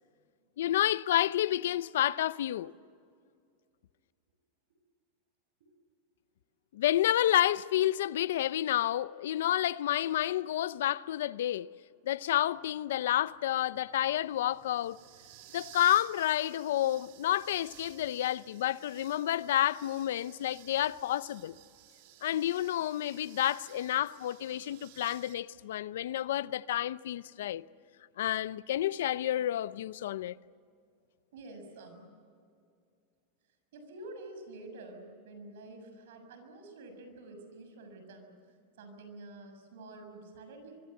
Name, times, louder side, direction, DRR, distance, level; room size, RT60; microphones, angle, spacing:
voice 1, 0.6-2.7 6.7-11.7 12.1-15.0 15.5-21.5 22.2-27.6 28.2-30.4, left 12 dB, 80° left, 0.6 m, -30 dB
sound 1, 12.2-25.3, right 13 dB, 55° right, 2.0 m, -55 dB
voice 2, 31.3-32.1 33.7-40.9, right 2 dB, 80° right, 6.7 m, -48 dB
25.0 x 24.0 x 7.8 m
supercardioid pair, 160°, 0 cm